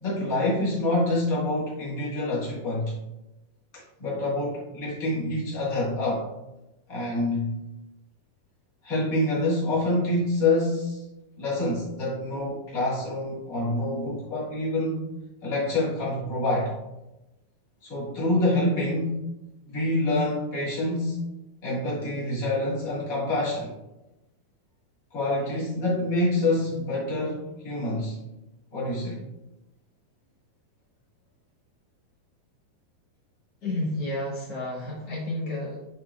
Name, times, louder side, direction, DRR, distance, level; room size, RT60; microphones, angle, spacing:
voice 1, 0.0-2.9 3.7-6.3 6.9-7.6 8.8-11.1 11.4-15.1 15.4-16.7 17.8-19.3 19.7-21.2 21.6-23.7 25.1-28.2 28.7-29.2, left 2 dB, 40° left, -7 dB, 1.3 m, -26 dB
voice 2, 33.6-35.9, left 1 dB, 90° left, -6 dB, 0.9 m, -31 dB
10.5 x 4.2 x 2.5 m, 0.98 s
omnidirectional pair, 4.6 m